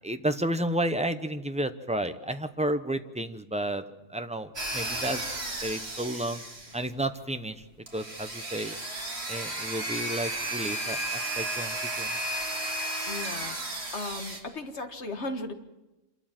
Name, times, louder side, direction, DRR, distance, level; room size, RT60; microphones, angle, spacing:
voice 1, 0.0-3.8 4.1-5.3 5.6-6.4 6.7-7.6 7.9-8.7 9.3-12.2, right 1 dB, 5° right, 9 dB, 0.6 m, -31 dB
sound 1, 4.6-7.0 7.9-14.4, right 1 dB, 45° right, 3.0 m, -33 dB
voice 2, 13.1-13.6 13.9-15.5, left 2 dB, 55° left, 6 dB, 1.8 m, -36 dB
27.0 x 13.0 x 7.5 m, 1.0 s
omnidirectional pair, 1.4 m